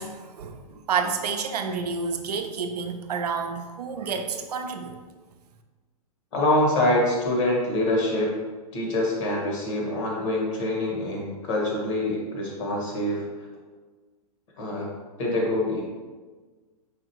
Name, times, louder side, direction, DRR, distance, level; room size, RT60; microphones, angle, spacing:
voice 1, 0.0-5.0, right 5 dB, 85° right, 5 dB, 0.5 m, -30 dB
voice 2, 6.3-8.3 8.7-13.3 14.6-14.9 15.2-15.9, left 1 dB, 50° left, -2 dB, 1.4 m, -25 dB
4.9 x 2.5 x 3.0 m, 1.4 s
hypercardioid pair, 125°, 20 cm